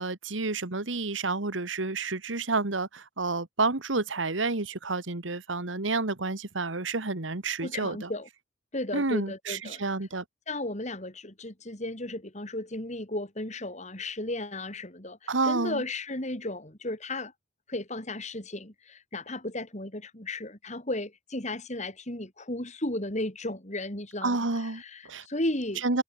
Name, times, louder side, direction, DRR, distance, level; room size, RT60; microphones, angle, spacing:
voice 1, 0.0-8.1 8.9-10.2 15.3-15.8 24.2-24.8 25.1-25.3 25.8-26.0, right 3 dB, 80° right, 1.8 m, -29 dB
voice 2, 7.6-8.3 8.7-9.8 10.5-17.3 17.7-26.0, left 1 dB, 35° left, 3.7 m, -35 dB
head